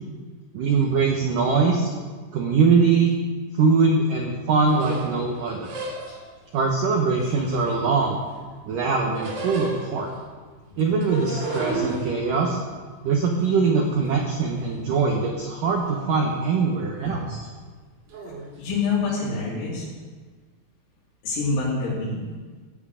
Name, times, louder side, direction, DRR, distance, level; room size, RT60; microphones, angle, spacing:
voice 1, 0.5-1.9 2.3-3.2 3.5-5.7 6.5-8.2 8.7-10.1 10.8-12.6 13.0-17.5, right 4 dB, 85° right, 1 dB, 1.9 m, -22 dB
sound 1, 4.7-6.4 7.1-8.4 8.7-10.2 10.8-14.6 14.9-15.6 15.9-16.4 16.8-17.0 18.1-18.5, right 3 dB, 50° right, 3.0 m, -34 dB
voice 2, 18.6-19.9 21.2-22.2, left 4 dB, 85° left, -7 dB, 5.3 m, -26 dB
16.0 x 9.3 x 5.0 m, 1.4 s
omnidirectional pair, 5.6 m